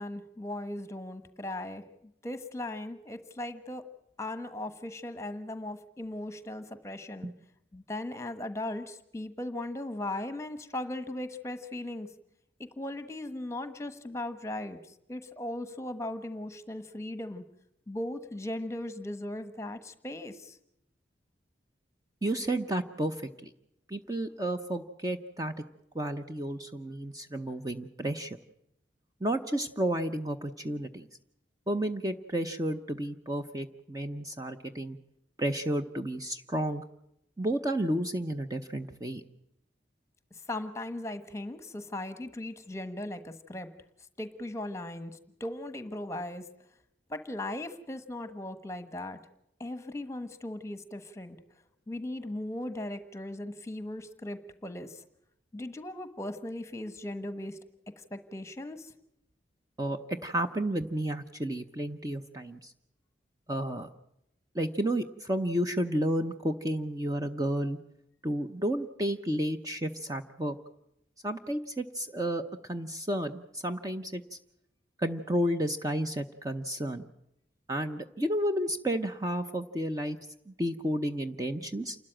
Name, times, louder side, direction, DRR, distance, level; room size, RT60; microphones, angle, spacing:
voice 1, 0.0-1.8 2.2-3.8 4.2-7.3 7.7-12.1 12.8-14.8 15.1-17.4 17.9-20.6 40.5-43.7 44.2-46.4 47.1-49.2 49.6-51.4 51.9-55.0 55.5-57.6 58.1-58.9, left 1 dB, 15° left, 10 dB, 1.2 m, -38 dB
voice 2, 22.2-23.5 23.9-25.5 25.9-28.4 29.2-31.1 31.7-35.0 35.4-36.8 37.4-39.2 59.8-62.7 63.5-63.9 64.5-67.8 68.2-70.6 71.2-74.4 75.0-77.0 77.7-80.2 80.5-82.0, right 1 dB, 20° right, 6 dB, 0.7 m, -31 dB
28.5 x 13.0 x 8.9 m, 0.82 s
head